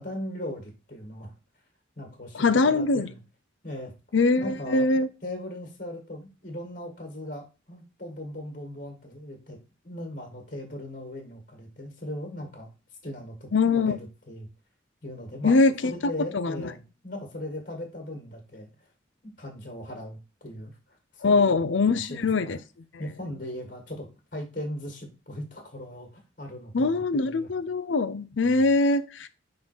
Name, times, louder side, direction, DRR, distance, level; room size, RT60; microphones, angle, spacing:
voice 1, 0.0-1.3 2.0-3.2 3.6-3.9 4.4-4.9 5.2-9.6 9.8-12.7 13.0-13.5 13.7-14.5 15.0-15.5 15.8-18.7 19.2-20.7 21.1-22.6 23.0-26.1 26.4-27.5 28.3-28.7, left 1 dB, 45° left, 1.8 m, -38 dB
voice 2, 2.3-3.1 4.1-5.1 13.5-14.0 15.4-15.9 16.3-16.7 21.2-22.6 26.7-29.3, left 3 dB, 75° left, 0.6 m, -22 dB
5.7 x 3.8 x 4.3 m
head